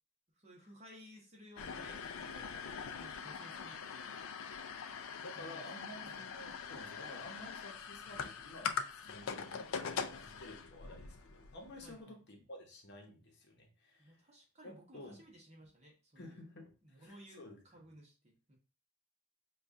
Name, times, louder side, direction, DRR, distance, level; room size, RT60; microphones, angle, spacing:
voice 1, 0.3-2.7 2.9-4.2 5.2-6.3 11.8-12.2 14.0-16.4 16.8-18.6, equal, 30° right, -1 dB, 0.9 m, -58 dB
sound 1, 1.6-11.9, left 6 dB, 65° left, 0.4 m, -43 dB
voice 2, 5.2-14.2 14.6-15.2 16.2-17.6, left 1 dB, 50° left, 2 dB, 0.8 m, -52 dB
5.1 x 2.3 x 2.5 m, 0.34 s
head